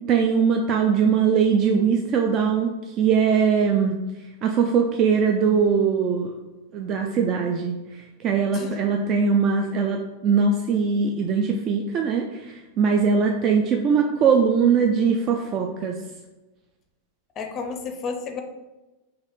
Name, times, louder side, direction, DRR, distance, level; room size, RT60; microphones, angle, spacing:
voice 1, 0.1-2.7 3.0-4.0 4.4-6.3 6.7-7.7 8.2-16.0, right 6 dB, 35° right, 2 dB, 0.3 m, -21 dB
voice 2, 17.4-18.4, left 5 dB, 30° left, 5 dB, 0.5 m, -32 dB
4.0 x 2.5 x 4.1 m, 1.1 s
figure-of-eight pair, 90°, 0 cm